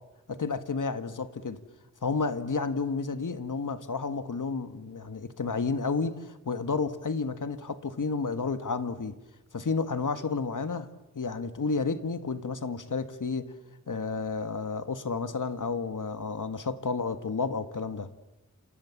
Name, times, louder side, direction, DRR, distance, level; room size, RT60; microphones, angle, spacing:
voice 1, 0.3-1.6 2.0-9.2 9.5-10.9 11.2-13.5 13.9-18.1, left 4 dB, 80° left, 1.8 m, -31 dB
29.0 x 28.0 x 7.4 m
wide cardioid pair, 75°, 31 cm